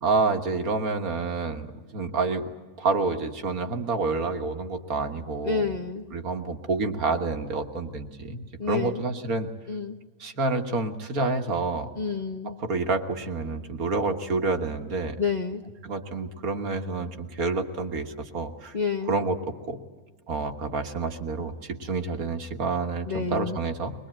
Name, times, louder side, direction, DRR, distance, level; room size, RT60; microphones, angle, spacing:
voice 1, 0.0-1.7 1.9-2.5 2.8-5.8 6.1-9.5 10.2-11.9 12.5-15.2 15.8-18.7 19.1-19.4 19.7-19.8 20.3-23.9, right 3 dB, 65° right, 6 dB, 1.9 m, -28 dB
voice 2, 5.4-6.0 8.6-9.0 9.7-10.0 12.0-12.6 15.2-15.6 18.7-19.2 23.1-23.6, left 5 dB, 35° left, 4 dB, 0.8 m, -29 dB
22.0 x 21.5 x 8.9 m, 1.4 s
omnidirectional pair, 1.7 m